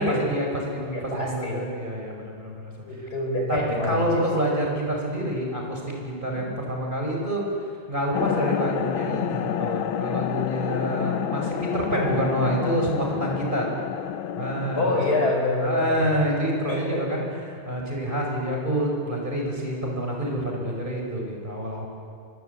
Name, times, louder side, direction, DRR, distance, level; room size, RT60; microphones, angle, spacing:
voice 1, 0.0-2.7 3.5-7.4 7.9-13.7 14.4-15.3 15.6-21.9, equal, 25° right, -1 dB, 5.5 m, -27 dB
voice 2, 0.9-1.7 2.9-4.1 6.3-6.6 14.8-16.1 16.7-17.1, left 2 dB, 50° left, 1 dB, 5.5 m, -26 dB
sound 1, 8.1-15.3, left 10 dB, 90° left, 1.6 m, -29 dB
24.5 x 22.5 x 8.1 m, 2.3 s
omnidirectional pair, 2.1 m